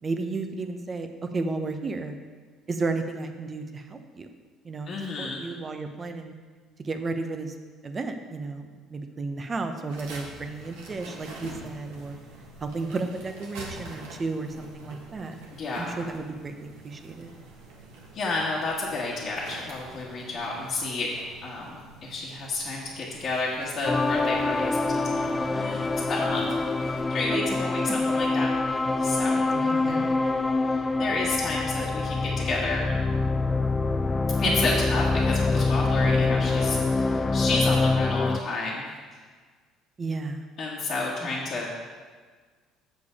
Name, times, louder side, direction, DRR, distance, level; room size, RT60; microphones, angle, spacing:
voice 1, 0.0-1.1 1.3-2.1 2.7-4.3 4.6-6.3 6.8-7.5 7.8-12.2 12.6-15.3 15.8-17.3 27.3-28.1 29.5-30.1 34.4-34.5 40.0-40.5, right 3 dB, 35° right, 6 dB, 0.9 m, -33 dB
voice 2, 4.9-5.4 15.5-15.9 18.1-21.1 21.4-26.5 26.8-28.5 28.9-30.0 30.6-33.1 34.4-38.9 40.6-41.8, left 3 dB, 50° left, -6 dB, 1.5 m, -31 dB
sound 1, 9.9-27.0, right 2 dB, 80° right, 1.5 m, -46 dB
sound 2, 23.8-38.4, left 3 dB, 25° left, 0.5 m, -25 dB
6.9 x 6.7 x 5.0 m, 1.5 s
hypercardioid pair, 60°, 0 cm